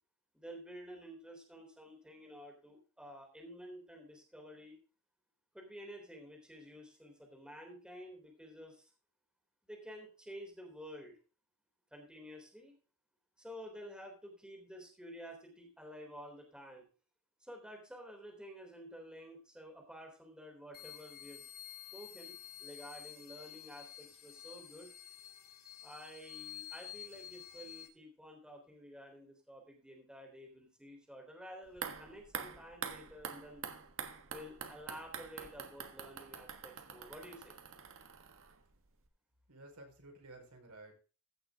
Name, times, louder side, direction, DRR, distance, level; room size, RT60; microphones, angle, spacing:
voice 1, 0.3-4.8 5.5-8.9 9.7-11.2 11.9-12.7 13.4-16.9 17.4-21.4 21.9-24.9 25.8-33.6 34.2-37.5, equal, 5° right, 1 dB, 3.6 m, -51 dB
sound 1, 20.7-27.9, left 11 dB, 45° left, 2.5 m, -50 dB
sound 2, 31.7-38.8 39.1-39.2, right 7 dB, 60° right, 1.4 m, -46 dB
voice 2, 39.5-40.9, right 2 dB, 90° right, 2 dB, 4.4 m, -54 dB
15.5 x 6.7 x 3.6 m, 0.35 s
head